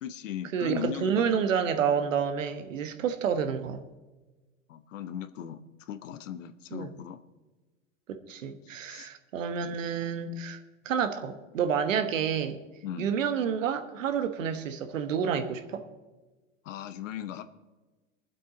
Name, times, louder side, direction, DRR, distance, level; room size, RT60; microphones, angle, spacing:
voice 1, 0.0-1.3 4.7-7.2 8.6-9.1 9.6-9.8 12.8-13.1 16.6-17.4, left 9 dB, 75° left, 10 dB, 1.2 m, -38 dB
voice 2, 0.5-3.8 6.7-6.9 8.1-10.6 10.8-12.6 13.0-15.8, right 7 dB, 80° right, 8 dB, 1.5 m, -29 dB
23.0 x 7.8 x 3.9 m, 1.2 s
hypercardioid pair, 100°, 38 cm